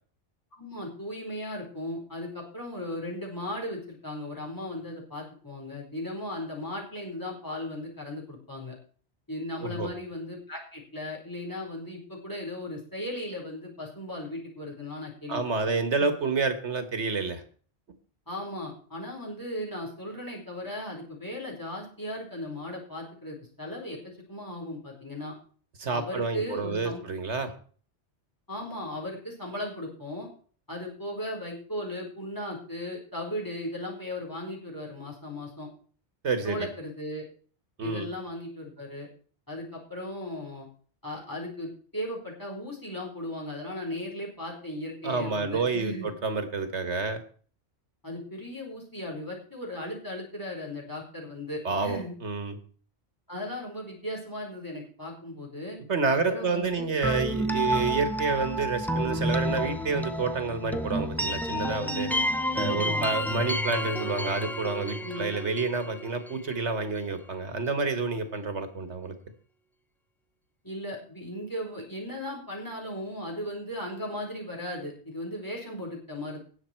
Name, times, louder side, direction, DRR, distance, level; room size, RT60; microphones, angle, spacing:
voice 1, 0.6-8.8 9.3-15.4 18.3-25.3 25.9-27.0 28.5-30.3 30.7-35.7 36.4-37.2 37.8-39.1 39.5-40.7 41.0-46.1 48.0-52.2 53.3-55.8 56.3-56.9 62.6-63.1 65.0-65.3 70.6-76.4, left 1 dB, 15° left, -2 dB, 4.5 m, -37 dB
voice 2, 15.3-17.4 25.8-27.5 36.2-36.7 37.8-38.1 45.0-47.2 51.6-52.6 55.9-62.1 62.5-69.2, right 4 dB, 80° right, 9 dB, 1.8 m, -29 dB
sound 1, 57.0-66.8, equal, ahead, 0.7 m, -30 dB
18.5 x 7.2 x 4.5 m, 0.44 s
omnidirectional pair, 1.2 m